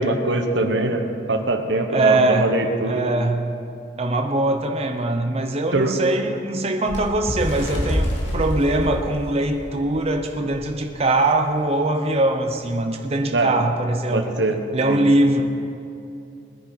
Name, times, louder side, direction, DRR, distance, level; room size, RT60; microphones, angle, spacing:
voice 1, 0.0-3.0 5.7-5.9 13.3-13.5 14.1-14.6 14.9-15.0, right 2 dB, 80° right, 5 dB, 1.2 m, -22 dB
voice 2, 1.9-2.6 2.9-3.5 4.0-14.4 14.7-15.4, right 2 dB, 35° right, 4 dB, 0.7 m, -22 dB
Bird, 6.8-10.0 10.5-10.7 10.9-11.2 12.0-12.1, equal, 80° left, 2.6 m, -26 dB
21.0 x 10.0 x 4.1 m, 2.6 s
head